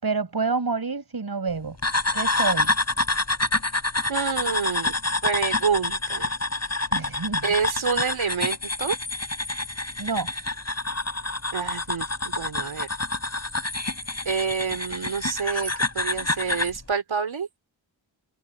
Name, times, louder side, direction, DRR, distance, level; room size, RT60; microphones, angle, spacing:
voice 1, 0.0-1.8 2.1-2.7 6.9-7.5 10.0-10.3, right 4 dB, 50° right, 5.0 m, -28 dB
sound 1, 1.8-16.8, left 2 dB, 35° left, 5.6 m, -27 dB
voice 2, 4.1-4.9 5.2-6.3 7.4-9.0 11.5-12.9 14.2-17.5, right 6 dB, 85° right, 3.4 m, -27 dB
cardioid pair, 60°, 46 cm